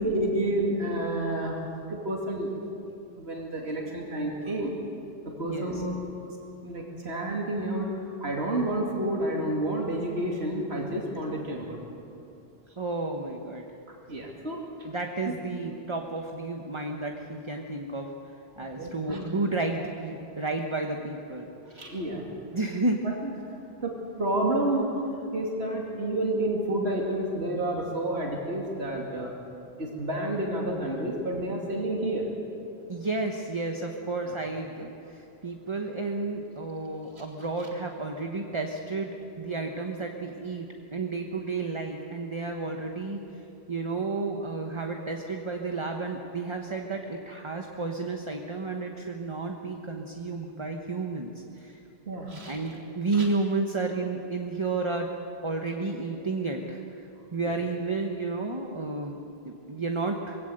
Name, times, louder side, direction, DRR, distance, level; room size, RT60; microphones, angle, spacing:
voice 1, 0.0-1.6 1.9-2.5 3.2-4.7 5.2-6.0 6.3-6.4 6.6-11.8 13.9-14.6 15.2-15.3 18.7-19.3 21.7-22.2 23.0-23.3 23.8-29.3 29.8-32.3 34.2-34.4 37.2-37.3 52.0-52.6 53.1-53.3 57.4-57.5, right 1 dB, 80° right, -1 dB, 2.8 m, -30 dB
voice 2, 5.4-5.8 12.8-13.6 14.8-18.1 18.6-21.8 22.5-23.0 32.9-43.2 43.7-51.3 51.6-51.7 52.5-55.1 55.4-56.8 57.3-59.2 59.4-60.4, right 3 dB, 30° right, 2 dB, 1.2 m, -31 dB
22.5 x 17.0 x 7.9 m, 2.7 s
omnidirectional pair, 1.1 m